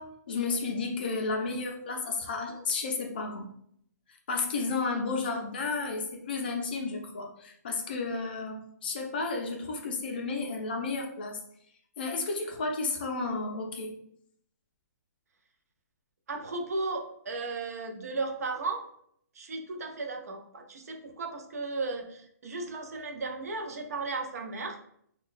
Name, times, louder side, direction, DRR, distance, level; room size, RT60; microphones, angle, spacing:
voice 1, 0.0-3.5 4.3-11.4 12.0-13.9, left 3 dB, 30° left, 1 dB, 0.4 m, -32 dB
voice 2, 16.3-18.8 19.3-24.8, right 3 dB, 60° right, 3 dB, 0.5 m, -35 dB
3.8 x 2.2 x 2.4 m, 0.68 s
hypercardioid pair, 175°, 10 cm